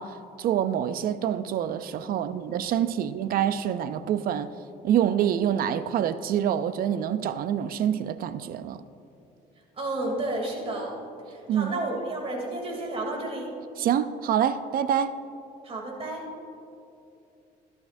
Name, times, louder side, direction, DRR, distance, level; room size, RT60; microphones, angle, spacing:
voice 1, 0.0-4.5 4.8-8.8 11.5-11.7 13.8-15.2, right 9 dB, 60° right, 0.5 m, -26 dB
voice 2, 9.8-11.0 11.3-13.5 15.6-16.2, right 2 dB, 35° right, 2.9 m, -31 dB
16.0 x 11.5 x 2.6 m
cardioid pair, 110°, 17 cm